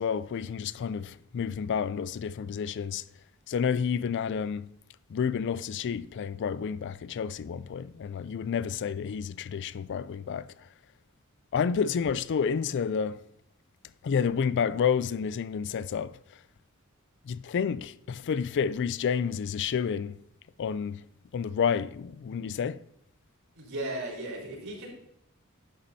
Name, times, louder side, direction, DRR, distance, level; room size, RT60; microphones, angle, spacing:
voice 1, 0.0-3.0 3.5-4.7 5.1-10.5 11.5-13.2 14.0-16.1 17.2-20.2 20.6-21.0 21.3-22.8, left 6 dB, 55° left, 0.3 m, -30 dB
voice 2, 23.5-24.9, right 1 dB, 75° right, 4.2 m, -36 dB
11.0 x 9.9 x 2.7 m
head